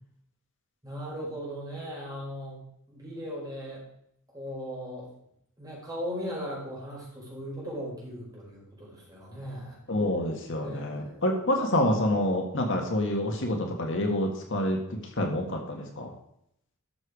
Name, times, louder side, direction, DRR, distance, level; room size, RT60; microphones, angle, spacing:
voice 1, 0.8-2.6 2.9-3.8 4.3-5.1 5.6-9.8 10.6-11.3, equal, 15° right, -5 dB, 4.7 m, -38 dB
voice 2, 9.9-14.8 15.2-16.1, left 1 dB, 60° left, 2 dB, 1.7 m, -27 dB
12.5 x 6.6 x 5.0 m, 0.75 s
head